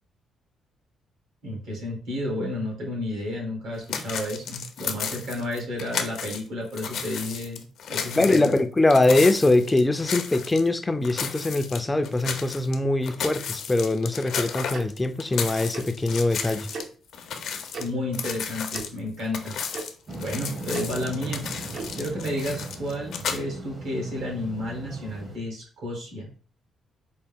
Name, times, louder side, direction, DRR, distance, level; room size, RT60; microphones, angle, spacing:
voice 1, 1.4-7.6 7.9-8.5 17.8-19.5 20.2-21.5 21.9-26.3, left 1 dB, 80° right, 1.9 m, -31 dB
sound 1, 3.9-6.4 6.7-10.7 11.0-12.7 13.0-16.8 17.1-23.4, left 7 dB, 70° left, 0.5 m, -33 dB
voice 2, 8.2-16.7, left 2 dB, 15° left, 0.3 m, -22 dB
Tick-tock, 14.7-14.8 15.7-15.9 16.7-16.9 17.7-17.8 18.7-18.9 19.7-19.8 20.7-20.8 21.7-21.9, right 4 dB, 65° right, 0.7 m, -35 dB
sound 2, 20.1-25.4, right 2 dB, 40° right, 0.8 m, -39 dB
4.5 x 2.2 x 3.5 m
cardioid pair, 90°, 0 cm